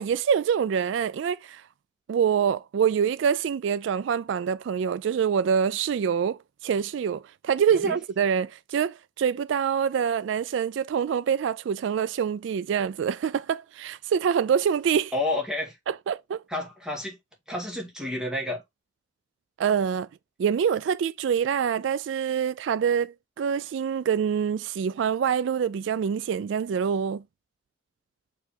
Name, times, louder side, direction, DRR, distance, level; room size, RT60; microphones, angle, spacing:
voice 1, 0.0-1.6 2.1-15.1 15.9-16.4 19.6-20.1 20.4-27.2, right 7 dB, 70° right, 0.3 m, -25 dB
voice 2, 15.1-15.8 16.5-17.2 17.5-18.6, left 2 dB, 5° right, 2.1 m, -30 dB
6.6 x 3.5 x 4.3 m
head